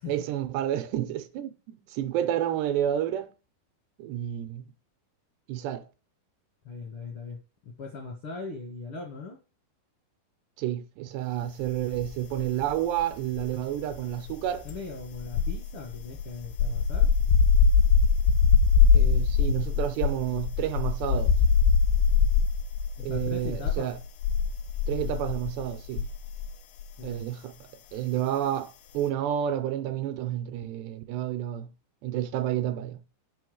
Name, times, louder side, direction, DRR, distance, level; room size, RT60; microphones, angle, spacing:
voice 1, 0.1-3.3 4.0-4.7 5.5-5.9 10.6-14.7 18.9-21.4 23.0-24.0 24.9-26.1 27.0-27.5 27.9-31.7 32.0-33.0, right 11 dB, 80° right, 2.6 m, -30 dB
voice 2, 6.6-9.4 14.6-17.1 23.0-23.9 27.0-27.2, left 3 dB, 75° left, 1.2 m, -39 dB
sound 1, 11.9-12.7 13.0-26.5 26.8-27.1, left 5 dB, 90° left, 3.4 m, -23 dB
7.1 x 5.5 x 6.3 m
omnidirectional pair, 5.2 m